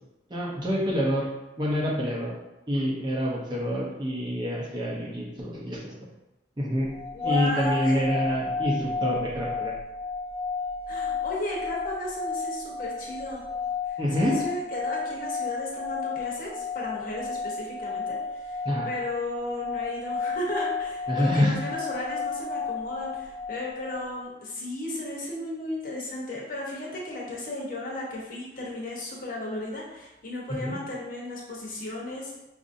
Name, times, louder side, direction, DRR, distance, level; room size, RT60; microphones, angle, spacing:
voice 1, 0.3-1.3 1.6-2.4 2.7-5.9 6.6-6.9 7.2-9.7 14.0-14.4 18.6-18.9 21.1-21.6 30.6-30.8, equal, 25° right, -4 dB, 0.7 m, -27 dB
sound 1, 6.9-24.1, left 5 dB, 30° left, 0.4 m, -32 dB
voice 2, 7.1-8.0 10.9-13.4 13.9-32.4, left 1 dB, 50° left, -4 dB, 0.9 m, -35 dB
5.0 x 2.6 x 2.6 m, 0.97 s
head